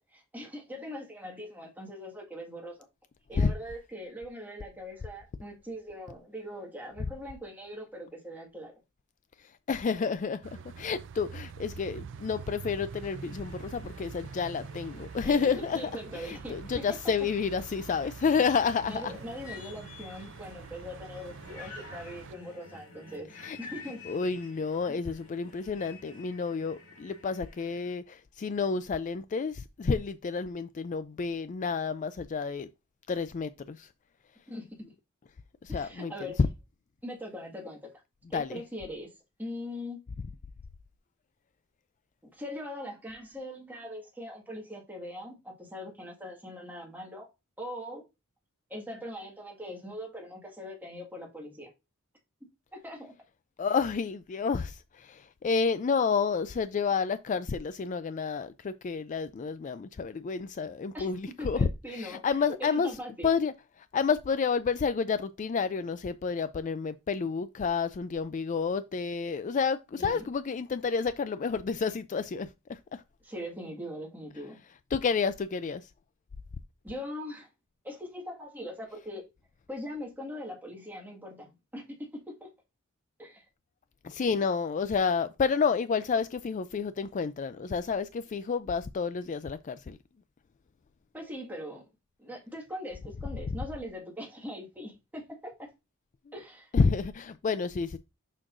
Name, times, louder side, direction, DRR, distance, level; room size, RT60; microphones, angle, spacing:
voice 1, 0.1-2.8 3.3-8.7 15.2-16.8 18.8-23.3 23.6-24.0 34.5-34.7 35.7-36.4 37.0-37.8 38.3-39.1 39.4-40.0 42.2-47.3 47.6-48.0 48.7-51.7 52.7-53.1 60.9-63.3 70.0-70.3 73.2-74.6 76.8-77.5 77.8-79.2 79.7-82.0 82.3-82.5 83.2-83.4 91.1-91.9 92.2-95.7 96.3-96.7, equal, 10° right, 1.7 m, -41 dB
voice 2, 9.7-10.5 10.8-19.1 23.4-23.6 24.1-32.7 33.1-33.9 35.6-36.1 38.3-38.6 53.6-62.9 63.2-63.5 63.9-73.0 74.9-75.9 84.0-90.0 96.7-98.0, left 5 dB, 35° left, 0.3 m, -30 dB
sound 1, 10.4-22.3, right 6 dB, 60° right, 0.4 m, -45 dB
sound 2, 13.0-27.9, left 3 dB, 85° left, 2.0 m, -51 dB
6.4 x 6.0 x 2.5 m
head